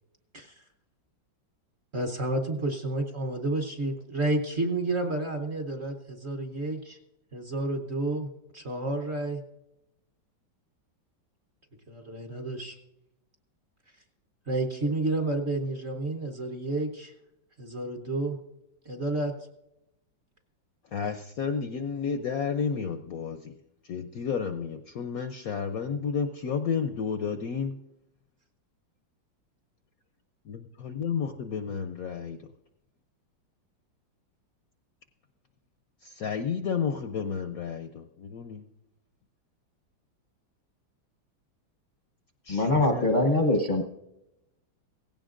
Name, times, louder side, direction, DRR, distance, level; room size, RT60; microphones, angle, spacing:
voice 1, 1.9-7.0 7.3-8.3 8.5-9.4 11.9-12.8 14.5-17.1 17.6-18.4 18.9-19.3, right 2 dB, 45° right, 5 dB, 1.0 m, -30 dB
voice 2, 20.9-23.4 23.9-27.7 30.5-32.4 36.0-38.6 42.5-43.0, left 6 dB, 70° left, 8 dB, 0.8 m, -31 dB
voice 3, 42.5-43.8, left 2 dB, 45° left, 3 dB, 0.6 m, -23 dB
17.5 x 16.0 x 2.5 m, 0.88 s
omnidirectional pair, 2.1 m